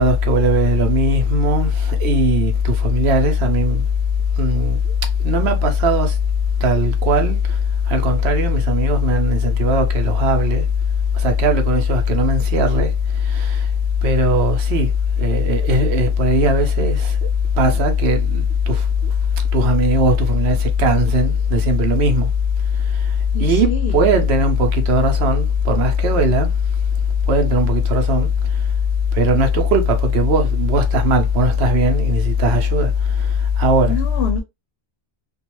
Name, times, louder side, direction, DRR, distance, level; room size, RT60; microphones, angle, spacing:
voice 1, 0.0-3.8 4.4-4.8 5.2-6.1 6.6-7.4 7.9-10.6 11.2-12.9 13.3-13.6 14.0-14.9 15.2-17.1 17.6-18.8 19.5-22.3 23.4-26.5 27.3-28.3 29.1-32.9 33.6-34.0, left 1 dB, 70° right, 0.9 m, -17 dB
voice 2, 23.3-24.0 33.9-34.4, left 6 dB, 70° left, 0.7 m, -26 dB
2.3 x 2.2 x 2.9 m
omnidirectional pair, 1.2 m